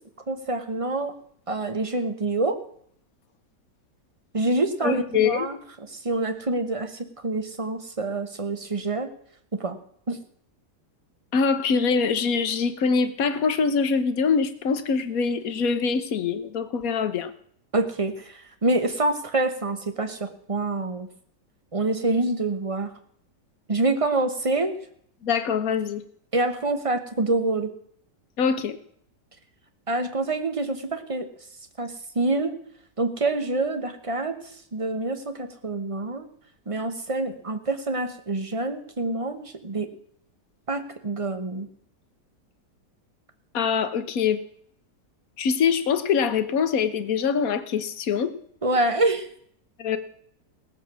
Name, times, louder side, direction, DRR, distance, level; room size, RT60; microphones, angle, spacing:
voice 1, 0.3-1.1 1.5-2.6 4.3-5.6 5.9-9.1 9.5-9.8 10.1-10.2 17.7-21.1 21.7-22.9 23.7-24.7 26.3-27.7 29.9-31.3 31.8-32.6 33.0-34.4 34.7-36.3 36.7-39.9 40.7-41.7 48.6-49.3, right 2 dB, 25° right, 8 dB, 0.9 m, -26 dB
voice 2, 4.8-5.5 11.3-17.3 25.2-26.0 28.4-28.8 43.5-44.4 45.4-48.4 49.8-50.0, left 6 dB, 60° left, 11 dB, 1.3 m, -24 dB
18.0 x 7.5 x 6.1 m, 0.65 s
omnidirectional pair, 1.8 m